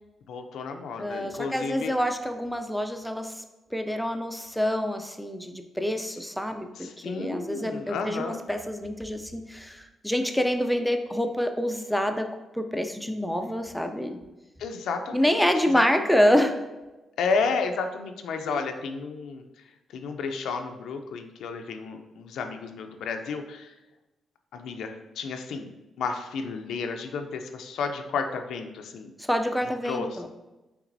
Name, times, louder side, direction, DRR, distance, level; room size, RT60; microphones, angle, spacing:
voice 1, 0.3-1.9 6.8-8.4 14.6-15.4 15.7-15.8 17.2-19.4 19.9-23.7 24.5-25.7 26.0-29.1 29.8-30.2, left 4 dB, 85° left, 5 dB, 0.4 m, -32 dB
voice 2, 1.0-3.4 3.7-12.3 12.5-14.2 15.1-16.6 18.4-18.6 29.2-30.3, equal, ahead, 6 dB, 0.3 m, -27 dB
5.9 x 3.3 x 2.6 m, 1.0 s
cardioid pair, 130°, 0 cm